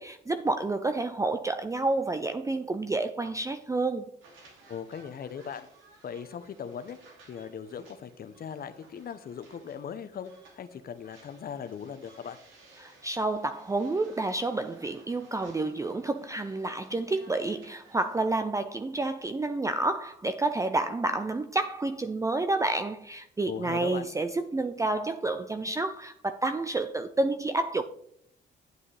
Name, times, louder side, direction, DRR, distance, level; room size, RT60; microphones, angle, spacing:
voice 1, 0.0-4.1 12.8-27.8, right 2 dB, 15° right, 0.5 m, -29 dB
sound 1, 4.2-18.2, right 3 dB, 80° right, 2.7 m, -57 dB
voice 2, 4.7-5.7 6.0-7.0 7.3-12.4 23.5-24.1, left 7 dB, 50° left, 0.8 m, -39 dB
9.4 x 8.5 x 3.3 m
cardioid pair, 90°, 20 cm